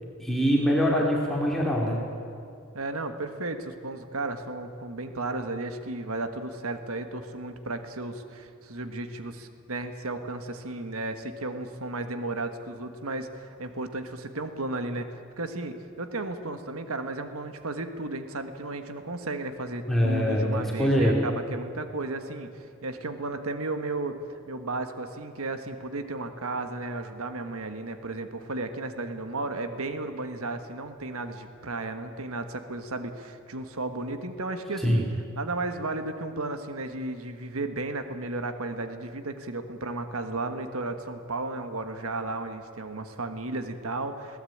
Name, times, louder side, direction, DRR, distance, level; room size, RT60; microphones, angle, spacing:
voice 1, 0.2-2.0 19.9-21.2 34.8-35.0, equal, ahead, -3 dB, 2.4 m, -23 dB
voice 2, 2.7-24.2 24.5-35.0 35.3-44.4, right 2 dB, 80° right, 8 dB, 1.5 m, -34 dB
21.5 x 17.0 x 8.7 m, 2.4 s
head